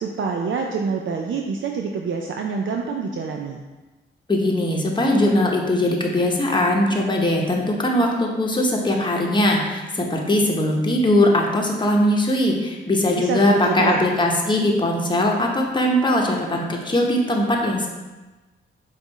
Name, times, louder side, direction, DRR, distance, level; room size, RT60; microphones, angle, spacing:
voice 1, 0.0-3.6 13.1-14.1, right 5 dB, 65° right, 2 dB, 0.4 m, -26 dB
voice 2, 4.3-17.9, left 1 dB, 20° left, -1 dB, 0.9 m, -20 dB
5.3 x 2.5 x 4.0 m, 1.2 s
cardioid pair, 65°, 21 cm